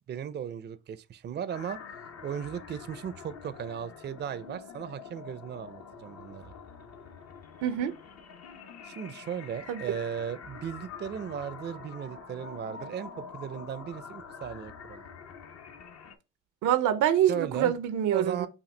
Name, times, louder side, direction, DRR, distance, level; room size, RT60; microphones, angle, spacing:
voice 1, 0.1-1.8 2.2-6.5 8.8-15.1 17.3-17.7 18.1-18.5, right 8 dB, 35° right, 0.4 m, -36 dB
sound 1, 1.5-16.2, left 6 dB, 55° left, 0.8 m, -46 dB
voice 2, 7.6-7.9 9.7-10.0 16.6-18.5, right 10 dB, 90° right, 0.6 m, -26 dB
5.7 x 2.3 x 3.2 m
cardioid pair, 90°, 30 cm